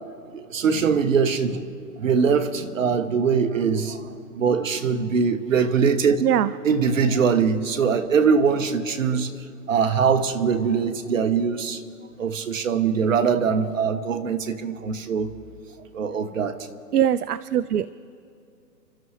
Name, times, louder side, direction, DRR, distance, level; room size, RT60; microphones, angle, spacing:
voice 1, 0.3-1.6 2.0-6.2 6.6-9.3 9.7-11.8 12.2-15.3 15.9-16.6, right 6 dB, 50° right, 1.2 m, -22 dB
voice 2, 16.9-17.9, right 10 dB, 70° right, 0.5 m, -21 dB
30.0 x 13.0 x 3.2 m
hypercardioid pair, 165°, 49 cm